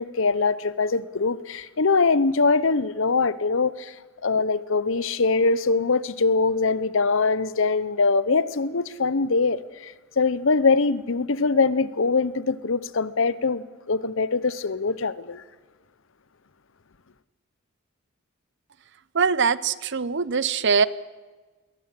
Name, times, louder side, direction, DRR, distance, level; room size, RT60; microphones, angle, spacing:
voice 1, 0.0-3.9 4.2-15.4, left 4 dB, 60° left, 0.8 m, -23 dB
voice 2, 19.1-20.9, right 5 dB, 55° right, 0.7 m, -22 dB
21.5 x 18.5 x 7.6 m
head